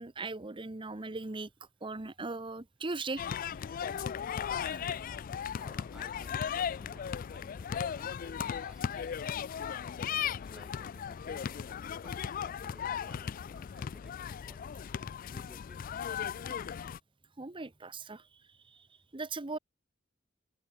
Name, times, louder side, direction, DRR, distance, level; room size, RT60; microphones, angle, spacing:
voice 1, 0.0-1.5 1.8-3.3 4.7-4.8 17.4-18.2 19.1-19.6, right 3 dB, 25° right, 0.9 m, -39 dB
sound 1, 3.2-17.0, left 8 dB, 45° left, 0.3 m, -37 dB
voice 2, 5.5-9.0 9.6-11.6 12.0-14.8 15.3-16.3, equal, 5° right, 4.3 m, -59 dB
head